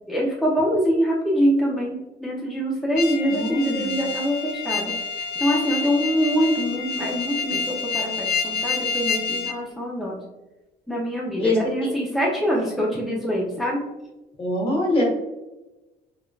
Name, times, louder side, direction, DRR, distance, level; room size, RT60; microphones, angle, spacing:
voice 1, 0.1-10.2 10.9-13.8, equal, ahead, -4 dB, 0.6 m, -24 dB
sound 1, 3.0-9.6, left 5 dB, 65° left, 0.5 m, -28 dB
voice 2, 3.2-4.0 11.4-11.6 13.0-13.1 14.4-15.0, left 1 dB, 35° left, -1 dB, 1.2 m, -24 dB
3.7 x 3.1 x 2.3 m, 1.0 s
cardioid pair, 110°, 17 cm